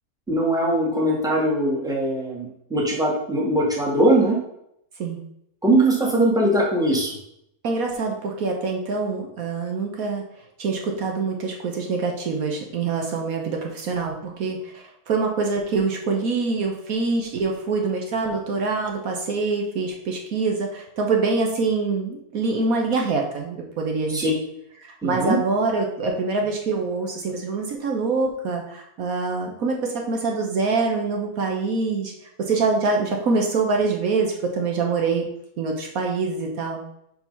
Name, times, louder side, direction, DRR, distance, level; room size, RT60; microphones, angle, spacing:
voice 1, 0.3-4.4 5.6-7.1 24.1-24.3 25.0-25.4, right 1 dB, ahead, -3 dB, 1.6 m, -21 dB
voice 2, 7.6-10.2 10.6-24.3 25.0-32.1 32.5-35.2 35.6-36.8, right 4 dB, 65° right, 1 dB, 1.3 m, -25 dB
5.4 x 4.9 x 5.3 m, 0.77 s
omnidirectional pair, 1.6 m